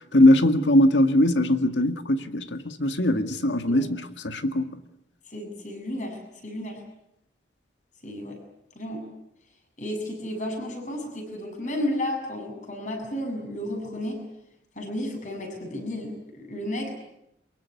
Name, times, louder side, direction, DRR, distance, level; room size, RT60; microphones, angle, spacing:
voice 1, 0.1-4.7, left 1 dB, 85° left, 1.9 m, -21 dB
voice 2, 5.3-6.8 8.0-8.4 8.8-9.1 9.8-14.2 14.8-16.9, left 1 dB, 40° left, 7.2 m, -32 dB
23.5 x 22.5 x 9.5 m
head